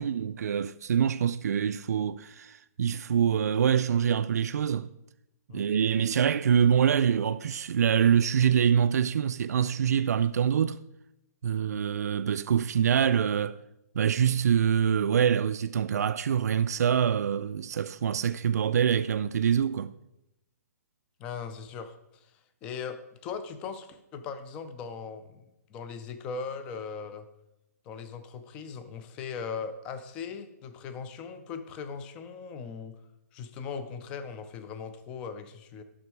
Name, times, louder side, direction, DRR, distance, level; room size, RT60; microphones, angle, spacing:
voice 1, 0.0-4.9 5.5-10.8 11.4-13.6 14.0-19.9, right 8 dB, 75° right, 0.4 m, -25 dB
voice 2, 21.2-22.3 22.6-27.3 27.9-33.0 33.3-35.8, left 6 dB, 10° left, 0.4 m, -39 dB
11.0 x 6.1 x 4.6 m
hypercardioid pair, 175°, 9 cm